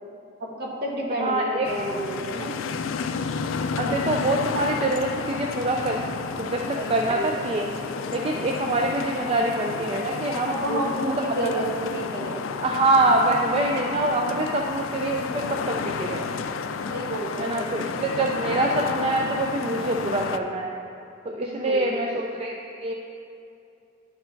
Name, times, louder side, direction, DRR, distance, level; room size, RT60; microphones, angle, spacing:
voice 1, 0.4-2.5 6.7-7.3 10.4-12.4 16.9-17.5 21.3-21.9, right 1 dB, 50° right, -2 dB, 1.3 m, -30 dB
voice 2, 1.2-1.7 3.8-6.1 6.4-7.7 8.1-11.6 12.6-16.3 17.4-20.8 21.2-22.9, right 2 dB, 30° right, 1 dB, 0.4 m, -25 dB
sound 1, 1.6-20.4, left 5 dB, 80° left, 0.4 m, -31 dB
11.0 x 4.5 x 4.5 m, 2.7 s
head